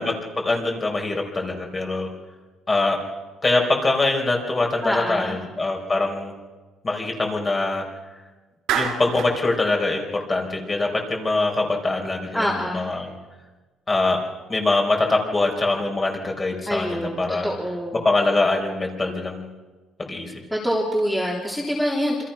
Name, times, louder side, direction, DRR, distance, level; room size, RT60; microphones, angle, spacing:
voice 1, 0.0-2.1 2.7-3.0 3.4-6.3 6.8-7.8 8.7-13.1 13.9-14.2 14.5-17.5 18.0-19.5 20.0-20.3, left 2 dB, 20° left, 1 dB, 4.6 m, -23 dB
voice 2, 4.8-5.4 12.3-12.8 16.7-18.0 20.5-22.2, equal, ahead, -4 dB, 3.6 m, -25 dB
Clapping, 8.7-9.4, right 8 dB, 85° right, 4.9 m, -25 dB
28.0 x 26.0 x 5.9 m, 1.3 s
cardioid pair, 140°, 0 cm